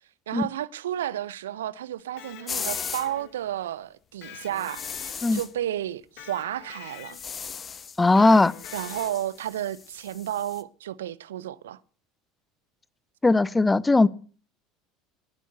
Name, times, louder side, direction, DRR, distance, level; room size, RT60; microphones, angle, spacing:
voice 1, 0.3-7.2 8.7-11.8, right 12 dB, 75° right, 0.7 m, -32 dB
Electric guitar, 2.0-3.5 4.2-5.6 6.2-7.4 8.2-9.4, left 15 dB, 55° left, 1.2 m, -46 dB
sound 1, 2.5-3.1 4.5-5.5 7.0-8.0 8.3-10.6, left 6 dB, 30° left, 1.3 m, -37 dB
voice 2, 8.0-8.5 13.2-14.1, left 2 dB, 15° left, 0.7 m, -18 dB
19.5 x 11.0 x 6.7 m
figure-of-eight pair, 70°, 0 cm